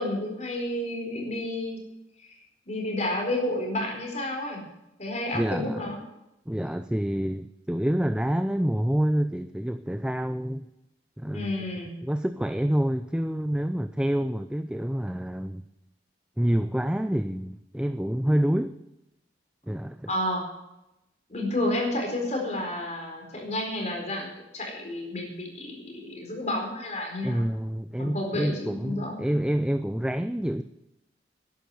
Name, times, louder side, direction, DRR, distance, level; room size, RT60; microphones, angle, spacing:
voice 1, 0.0-1.8 2.2-2.4 2.7-4.6 5.0-6.0 11.3-11.9 20.1-20.4 21.3-27.4 28.0-28.5 28.8-29.2, left 1 dB, 40° left, 1 dB, 4.4 m, -30 dB
voice 2, 5.3-5.9 6.5-10.7 11.2-11.5 12.0-15.6 16.4-18.8 19.7-20.1 27.2-30.6, equal, 5° right, 9 dB, 0.4 m, -27 dB
12.0 x 10.5 x 7.7 m, 0.89 s
head